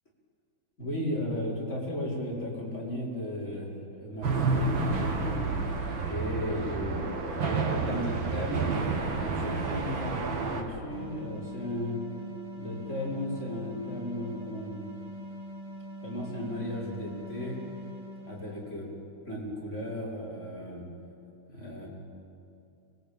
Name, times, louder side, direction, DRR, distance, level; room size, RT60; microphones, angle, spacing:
voice 1, 0.8-5.6 6.0-7.1 7.4-12.0 12.5-14.9 16.0-17.6 18.3-18.9 19.3-20.8 21.5-21.9, left 1 dB, 35° left, -4 dB, 5.8 m, -35 dB
sound 1, 4.2-10.6, right 4 dB, 75° right, 2.7 m, -30 dB
sound 2, 10.9-19.0, equal, 20° right, 2.4 m, -43 dB
25.0 x 19.5 x 9.0 m, 2.7 s
omnidirectional pair, 2.2 m